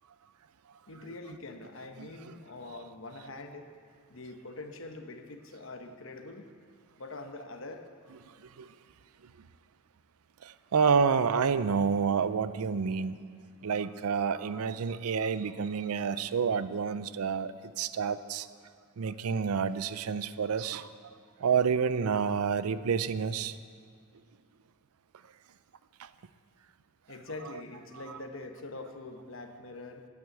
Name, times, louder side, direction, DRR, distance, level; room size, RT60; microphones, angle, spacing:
voice 1, 0.9-3.7 4.1-6.4 7.0-7.9 27.1-30.1, left 2 dB, 65° left, 6 dB, 1.0 m, -44 dB
voice 2, 10.4-13.2 13.6-18.5 19.0-21.1 21.4-23.6 26.0-26.1, right 6 dB, 85° right, 14 dB, 0.5 m, -29 dB
9.4 x 8.7 x 9.1 m, 2.1 s
head